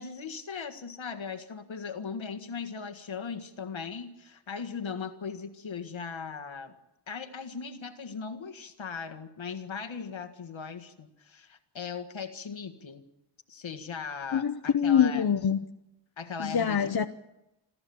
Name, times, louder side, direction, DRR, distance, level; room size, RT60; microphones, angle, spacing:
voice 1, 0.0-6.7 7.1-13.0 13.5-15.3 16.2-16.9, left 5 dB, 70° left, 8 dB, 1.8 m, -38 dB
voice 2, 14.3-15.6 16.4-17.1, left 8 dB, 50° left, 8 dB, 0.8 m, -24 dB
28.0 x 14.0 x 7.1 m, 0.91 s
wide cardioid pair, 130°, 48 cm